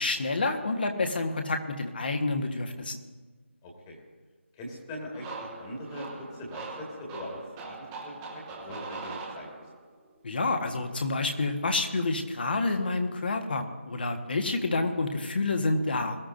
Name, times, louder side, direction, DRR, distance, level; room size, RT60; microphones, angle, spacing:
voice 1, 0.0-3.0 10.2-16.2, left 3 dB, 45° left, 5 dB, 1.5 m, -28 dB
voice 2, 3.6-4.0 4.5-8.1 8.6-9.7, left 1 dB, 15° left, 0 dB, 1.8 m, -41 dB
sound 1, 5.1-9.9, right 3 dB, 10° right, 1.1 m, -41 dB
22.0 x 13.0 x 2.7 m, 1.4 s
figure-of-eight pair, 160°, 7 cm